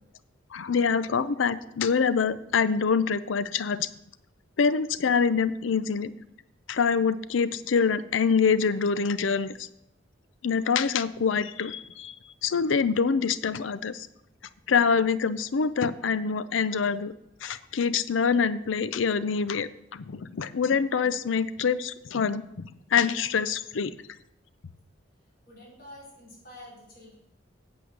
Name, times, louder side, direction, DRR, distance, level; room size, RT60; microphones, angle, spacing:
voice 1, 0.5-3.9 4.6-6.1 6.7-9.7 10.4-12.2 12.4-14.1 14.7-17.1 17.4-23.9, left 6 dB, 85° left, 15 dB, 0.5 m, -25 dB
voice 2, 25.2-27.2, left 1 dB, 50° left, -5 dB, 4.1 m, -48 dB
8.6 x 7.9 x 6.6 m, 0.81 s
head